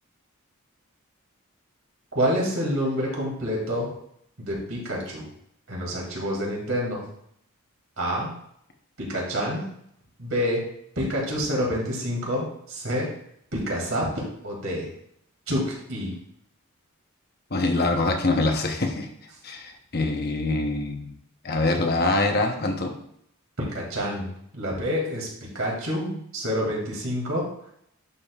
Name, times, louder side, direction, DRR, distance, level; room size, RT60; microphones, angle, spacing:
voice 1, 2.1-3.9 4.4-5.2 5.7-7.0 8.0-8.4 9.0-9.6 10.2-10.6 11.0-13.1 13.5-14.9 15.5-16.2 23.6-25.3 25.5-27.5, equal, 65° right, -2 dB, 2.5 m, -28 dB
voice 2, 17.5-19.1 19.4-21.1 21.4-22.9, left 2 dB, 45° left, 3 dB, 0.9 m, -24 dB
11.0 x 5.1 x 2.4 m, 0.71 s
head